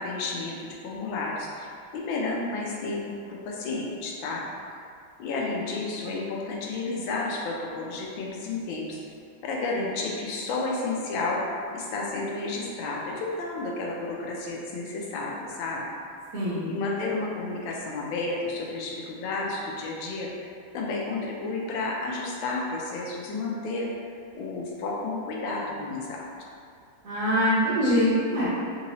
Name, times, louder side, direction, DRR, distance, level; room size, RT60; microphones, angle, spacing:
voice 1, 0.0-3.0 3.3-4.4 5.2-9.0 9.4-11.4 11.7-15.8 16.6-23.9 24.3-26.3, left 3 dB, 90° left, -2 dB, 1.4 m, -31 dB
voice 2, 16.3-16.7 27.0-28.5, equal, 60° right, -10 dB, 0.9 m, -23 dB
3.6 x 2.9 x 2.7 m, 2.4 s
omnidirectional pair, 2.1 m